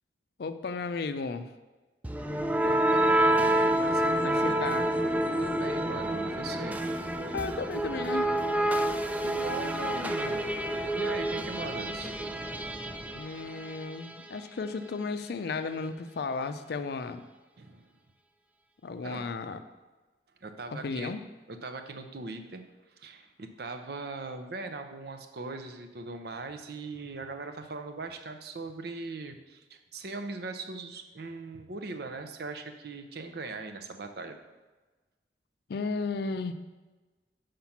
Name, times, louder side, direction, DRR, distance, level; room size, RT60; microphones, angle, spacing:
voice 1, 0.4-1.5 4.2-4.9 6.2-6.4 7.2-8.3 13.1-17.2 18.8-19.6 20.7-21.2 35.7-36.5, left 4 dB, 65° left, 10 dB, 0.4 m, -34 dB
sound 1, 2.0-13.9, right 1 dB, 10° right, 0.3 m, -28 dB
voice 2, 2.6-4.7 5.4-6.8 8.8-8.9 9.2-10.5 10.9-12.1 17.6-17.9 19.0-19.3 20.4-21.2 21.5-22.6 23.0-34.4, right 3 dB, 65° right, 7 dB, 0.7 m, -40 dB
5.7 x 5.1 x 5.8 m, 1.2 s
head